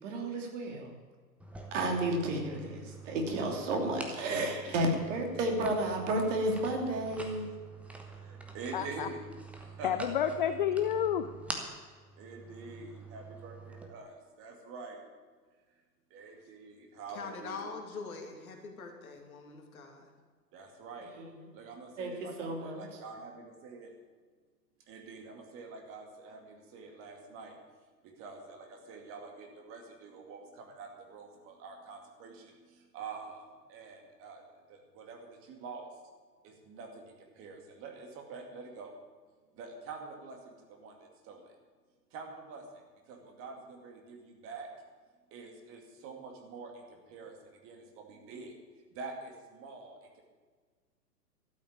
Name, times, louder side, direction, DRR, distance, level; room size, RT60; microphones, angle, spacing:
voice 1, 0.0-0.9 1.7-7.5 21.2-21.3 22.0-22.9, right 1 dB, 45° right, 3 dB, 2.9 m, -32 dB
sound 1, 1.4-13.9, right 3 dB, 5° right, 1.0 m, -47 dB
voice 2, 8.1-9.3 9.6-10.6 11.8-15.0 16.1-17.7 20.5-21.1 21.5-23.9 24.9-27.6 28.0-34.4 34.7-35.9 36.4-38.9 39.5-41.5 42.1-44.7 45.3-48.6 48.8-50.2, right 4 dB, 25° right, 3 dB, 2.3 m, -46 dB
voice 3, 8.7-9.1 9.8-11.3, left 9 dB, 30° left, 10 dB, 0.5 m, -30 dB
voice 4, 17.1-20.1, left 4 dB, 55° left, 3 dB, 2.7 m, -43 dB
12.5 x 8.5 x 8.7 m, 1.5 s
figure-of-eight pair, 110°, 50 cm